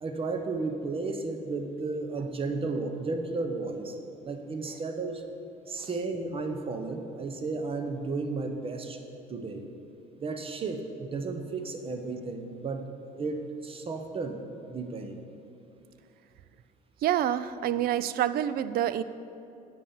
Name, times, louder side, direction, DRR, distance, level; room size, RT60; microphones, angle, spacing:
voice 1, 0.0-4.0 4.2-5.2 5.7-9.0 9.3-9.7 10.2-12.9 13.2-14.4 14.7-15.2, right 3 dB, 35° right, 6 dB, 0.9 m, -33 dB
voice 2, 17.0-19.0, right 11 dB, 65° right, 15 dB, 0.4 m, -27 dB
8.3 x 5.7 x 7.4 m, 2.7 s
cardioid pair, 110°, 17 cm